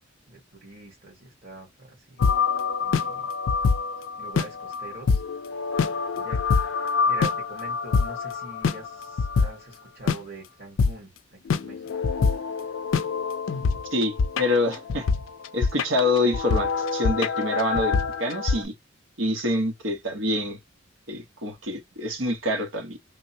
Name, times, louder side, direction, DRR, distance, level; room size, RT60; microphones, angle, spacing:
voice 1, 0.3-2.5 2.8-3.3 4.2-5.2 6.1-11.8, right 2 dB, 50° right, 1.7 m, -43 dB
sound 1, 2.2-9.5 10.1-10.2 10.8-10.9 11.5-18.6, left 5 dB, 85° left, 0.4 m, -25 dB
voice 2, 13.9-15.1 15.5-18.7 19.2-20.6 21.1-23.0, left 1 dB, 75° right, 1.1 m, -26 dB
3.4 x 2.1 x 2.7 m
head